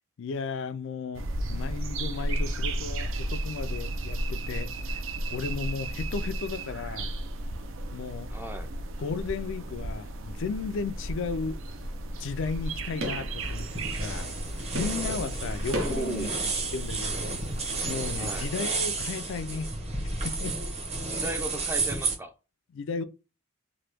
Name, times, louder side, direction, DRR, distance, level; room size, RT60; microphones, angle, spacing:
voice 1, 0.2-5.0 5.3-7.1 7.9-8.3 9.0-11.6 12.2-14.4 14.7-16.3 16.7-17.5 17.8-19.7 20.0-20.6 22.7-23.0, left 5 dB, 70° left, 0.4 m, -35 dB
sound 1, 1.1-18.5, right 1 dB, 70° right, 0.5 m, -34 dB
voice 2, 8.3-8.7 15.7-16.3 18.1-18.5 21.1-22.3, right 2 dB, 10° right, 0.4 m, -36 dB
sound 2, 11.4-16.2, equal, 85° right, 0.9 m, -38 dB
sound 3, 13.4-22.2, right 3 dB, 30° right, 0.9 m, -32 dB
3.0 x 2.2 x 3.3 m
head